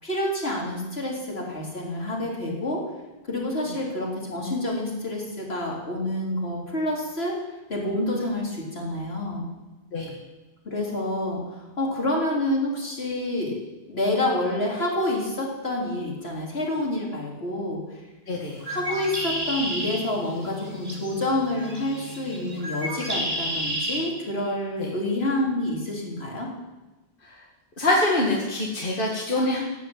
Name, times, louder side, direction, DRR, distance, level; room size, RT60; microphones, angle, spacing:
voice 1, 0.0-2.8 3.3-7.3 7.7-9.5 10.7-13.5 13.9-17.8 18.6-26.5, left 1 dB, 75° left, -2 dB, 3.9 m, -28 dB
voice 2, 18.3-18.6 24.8-24.9 27.2-27.4 27.8-29.6, left 1 dB, 55° left, -2 dB, 2.3 m, -25 dB
Bird, 18.5-24.0, equal, 70° right, 3.4 m, -32 dB
16.5 x 8.6 x 8.9 m, 1.1 s
omnidirectional pair, 1.1 m